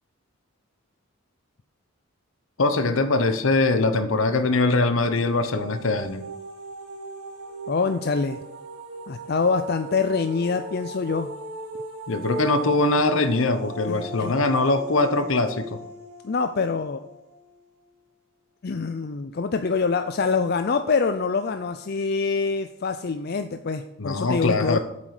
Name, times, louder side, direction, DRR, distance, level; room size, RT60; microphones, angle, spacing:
voice 1, 2.6-6.2 12.1-15.8 24.0-24.8, left 2 dB, 65° left, 10 dB, 0.9 m, -22 dB
sound 1, 5.0-17.9, right 1 dB, 85° right, 1.8 m, -38 dB
voice 2, 7.7-8.4 9.1-11.3 13.9-14.4 16.2-17.0 18.6-24.8, left 4 dB, 45° left, 9 dB, 0.4 m, -25 dB
8.1 x 7.5 x 4.9 m, 0.92 s
head